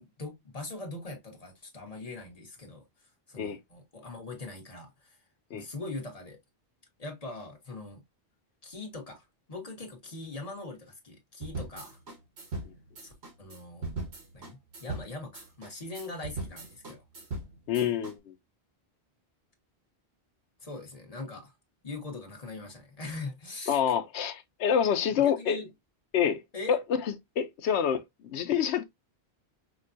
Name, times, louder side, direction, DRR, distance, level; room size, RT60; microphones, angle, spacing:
voice 1, 0.0-2.8 3.3-5.2 5.5-6.4 7.0-8.0 8.6-12.0 13.0-13.9 14.3-17.0 20.6-21.5 21.8-23.8 25.0-25.7 26.5-26.8, left 2 dB, 35° left, 1.1 m, -41 dB
sound 1, 11.4-18.1, right 3 dB, 85° right, 1.6 m, -39 dB
voice 2, 17.7-18.3 23.7-25.6 26.1-26.4 26.7-28.8, left 8 dB, 85° left, 0.9 m, -27 dB
5.1 x 2.2 x 2.5 m
omnidirectional pair, 1.1 m